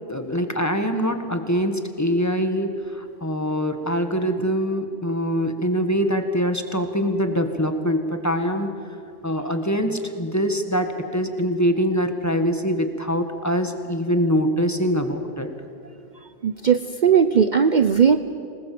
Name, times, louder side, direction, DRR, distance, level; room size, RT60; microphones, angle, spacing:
voice 1, 0.1-8.7 9.2-15.5, equal, 15° left, 6 dB, 1.6 m, -24 dB
voice 2, 16.4-18.2, right 7 dB, 50° right, 9 dB, 0.8 m, -17 dB
26.0 x 19.5 x 7.7 m, 2.5 s
omnidirectional pair, 1.1 m